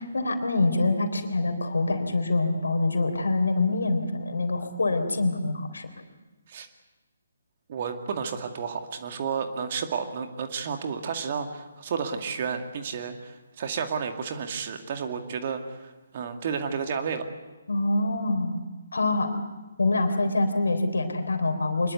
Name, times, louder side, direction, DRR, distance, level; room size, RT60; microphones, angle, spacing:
voice 1, 0.1-5.9 17.7-18.6 18.9-19.3 19.8-21.9, left 2 dB, 65° left, 6 dB, 3.6 m, -25 dB
voice 2, 7.7-17.2, right 6 dB, 40° right, 5 dB, 2.2 m, -31 dB
25.0 x 21.0 x 8.1 m, 1.2 s
figure-of-eight pair, 140°, 0 cm